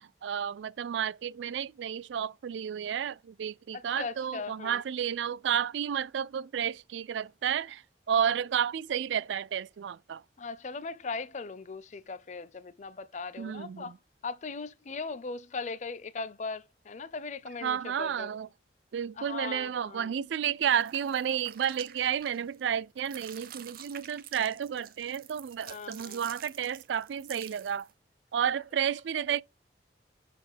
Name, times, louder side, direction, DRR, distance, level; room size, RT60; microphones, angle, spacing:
voice 1, 0.0-10.2 13.4-14.0 17.6-18.5 18.9-27.9 28.3-29.4, right 8 dB, 80° right, 0.3 m, -31 dB
voice 2, 3.7-4.8 10.4-13.9 14.2-18.4 19.2-20.1 25.7-26.2, left 4 dB, 40° left, 0.5 m, -39 dB
sound 1, 20.7-22.7 23.0-27.9, right 10 dB, 55° right, 0.7 m, -48 dB
5.4 x 4.3 x 5.0 m
head